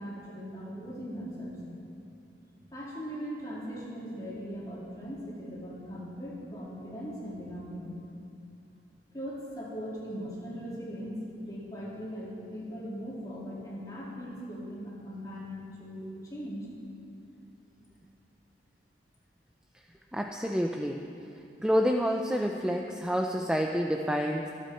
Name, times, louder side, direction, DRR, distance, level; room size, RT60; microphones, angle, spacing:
voice 1, 0.0-1.6 2.7-7.9 9.1-16.7, equal, 20° left, -6 dB, 3.2 m, -39 dB
voice 2, 20.1-21.0 21.6-24.5, equal, 5° right, 2 dB, 0.5 m, -28 dB
24.5 x 8.4 x 4.4 m, 2.6 s
head